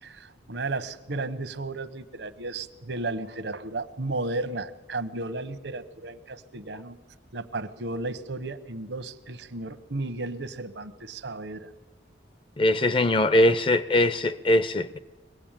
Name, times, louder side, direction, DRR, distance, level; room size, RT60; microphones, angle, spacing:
voice 1, 0.0-7.0 7.3-11.7, right 2 dB, 75° right, 1.1 m, -34 dB
voice 2, 12.6-15.0, left 1 dB, 30° left, 0.6 m, -21 dB
23.5 x 17.5 x 9.0 m
head